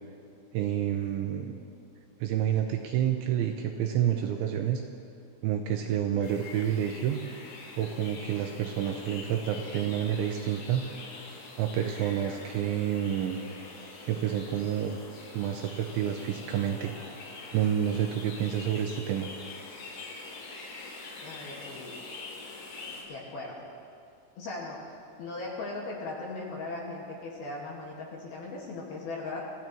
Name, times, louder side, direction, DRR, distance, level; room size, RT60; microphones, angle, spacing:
voice 1, 0.5-1.6 2.2-4.8 5.4-7.2 7.8-10.8 11.6-13.4 14.0-15.0 15.3-16.9 17.5-19.3, right 10 dB, 80° right, 3 dB, 2.8 m, -29 dB
sound 1, 6.2-23.0, left 3 dB, 75° left, 5.3 m, -45 dB
voice 2, 21.2-22.0 23.1-23.7 24.4-29.4, left 2 dB, 60° left, -4 dB, 3.2 m, -38 dB
25.5 x 16.0 x 3.1 m, 2.5 s
omnidirectional pair, 6.0 m